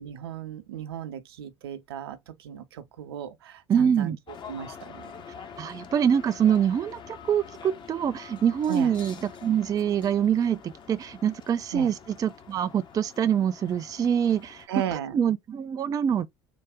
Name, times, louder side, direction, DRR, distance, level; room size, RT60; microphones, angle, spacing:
voice 1, 0.0-4.1 4.5-5.1 8.7-8.9 11.7-11.9 14.7-15.2, right 10 dB, 70° right, 0.7 m, -35 dB
voice 2, 3.7-4.2 5.6-14.7 15.1-16.3, right 8 dB, 25° right, 0.4 m, -25 dB
sound 1, 4.3-14.7, left 6 dB, 35° left, 0.9 m, -46 dB
3.8 x 2.3 x 3.5 m
figure-of-eight pair, 65°, 13 cm